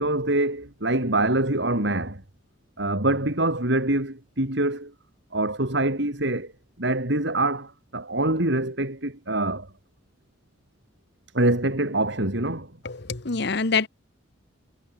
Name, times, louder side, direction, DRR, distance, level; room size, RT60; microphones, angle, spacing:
voice 1, 0.0-2.2 2.8-4.9 5.3-6.5 6.8-9.7 11.3-12.7, right 2 dB, 60° right, 3.8 m, -25 dB
voice 2, 12.8-13.9, left 4 dB, 60° left, 1.2 m, -25 dB
head